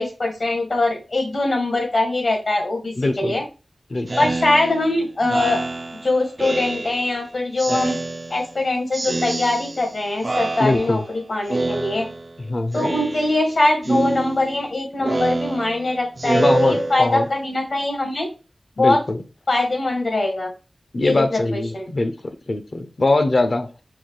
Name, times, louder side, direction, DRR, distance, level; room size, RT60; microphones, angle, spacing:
voice 1, 0.0-3.4 4.2-5.6 6.0-8.0 8.3-12.1 12.7-18.3 18.8-19.0 19.5-20.5 21.0-21.9, left 2 dB, 70° left, 1.7 m, -22 dB
voice 2, 3.0-3.4 3.9-4.1 10.6-11.0 12.5-12.9 16.3-17.3 18.8-19.2 20.9-22.1 22.5-23.7, left 2 dB, 55° left, 0.7 m, -21 dB
Speech synthesizer, 4.1-7.2 7.6-8.6 8.9-9.9 10.2-11.1 11.5-12.4 12.7-13.5 13.8-17.4, right 2 dB, 45° right, 0.3 m, -26 dB
5.6 x 2.4 x 3.2 m
wide cardioid pair, 75°, 0 cm